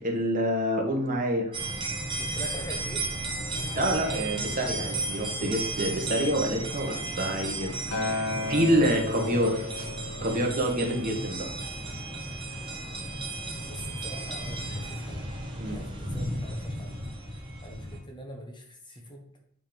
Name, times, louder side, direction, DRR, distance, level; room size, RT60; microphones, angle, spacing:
voice 1, 0.0-1.5 3.7-9.9 10.2-11.5 15.6-15.8, right 1 dB, 40° right, 1 dB, 1.4 m, -27 dB
sound 1, 1.5-18.0, right 2 dB, 20° right, 1.5 m, -34 dB
voice 2, 2.2-3.1 13.6-15.3 15.7-17.0 17.6-19.2, equal, 20° left, 2 dB, 1.1 m, -43 dB
Acoustic guitar, 7.9-12.2 13.0-13.1, left 3 dB, 75° left, 2.1 m, -35 dB
8.6 x 3.7 x 5.2 m, 0.67 s
head